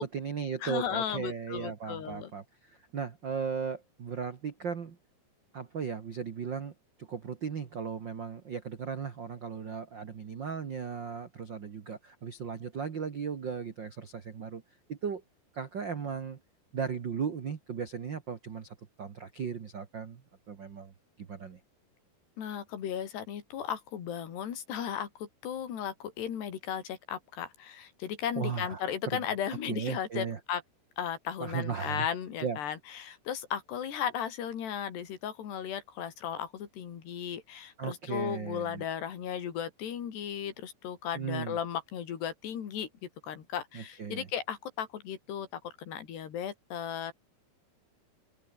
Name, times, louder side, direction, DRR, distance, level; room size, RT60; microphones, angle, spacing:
voice 1, 0.0-5.0 5.5-6.7 7.0-14.6 14.9-15.2 15.5-16.4 16.7-20.2 20.5-21.6 28.3-28.8 29.1-29.2 29.6-30.4 31.4-32.1 32.4-32.6 37.8-38.8 41.1-41.6 43.7-44.3, right 6 dB, 70° right, 1.0 m, -36 dB
voice 2, 0.6-2.3 22.4-30.6 31.0-42.9 43.2-47.1, left 9 dB, 80° left, 5.0 m, -36 dB
open air
omnidirectional pair, 4.7 m